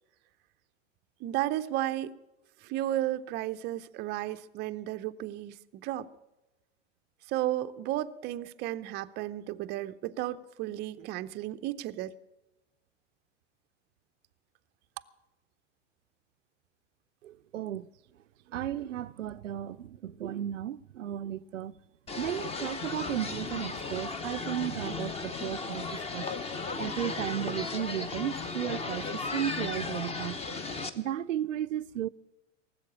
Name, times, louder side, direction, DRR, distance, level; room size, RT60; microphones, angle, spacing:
voice 1, 1.2-2.2 2.6-6.1 7.3-12.1, right 14 dB, 30° right, 0.5 m, -33 dB
voice 2, 17.2-17.9 18.5-21.8 22.2-26.3 26.8-30.6 30.9-32.1, right 11 dB, 80° right, 0.5 m, -34 dB
sound 1, 22.1-30.9, left 4 dB, 15° left, 0.9 m, -35 dB
18.0 x 7.7 x 8.6 m
hypercardioid pair, 100°, 37 cm